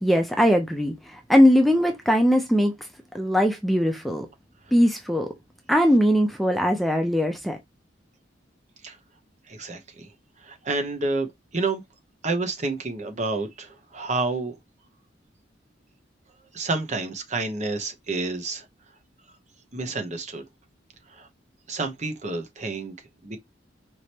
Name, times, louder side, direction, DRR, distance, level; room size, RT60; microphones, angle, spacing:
voice 1, 0.0-2.7 3.1-4.3 4.7-5.3 5.7-7.6, equal, ahead, 0.6 m, -20 dB
voice 2, 9.5-10.1 10.4-11.8 12.2-14.5 16.5-18.7 19.7-20.4 21.1-21.3 21.7-22.9 23.2-23.4, right 3 dB, 40° right, 0.9 m, -29 dB
4.9 x 3.0 x 2.9 m
head